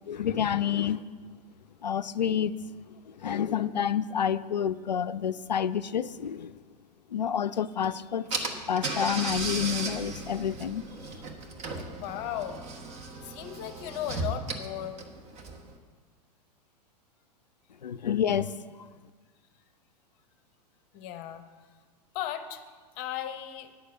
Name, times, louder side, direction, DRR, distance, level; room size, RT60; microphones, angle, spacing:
voice 1, 0.1-1.0 1.8-2.5 3.2-6.6 7.1-8.3 8.7-10.8 17.8-18.5, left 8 dB, 85° left, 0.4 m, -28 dB
Car / Engine, 7.8-7.9 8.3-15.7, right 3 dB, 30° right, 1.2 m, -36 dB
voice 2, 11.9-12.6 13.2-15.0 20.9-21.5 22.1-22.6 23.0-23.7, left 11 dB, 40° left, 0.8 m, -36 dB
9.1 x 6.6 x 7.8 m
figure-of-eight pair, 100°, 21 cm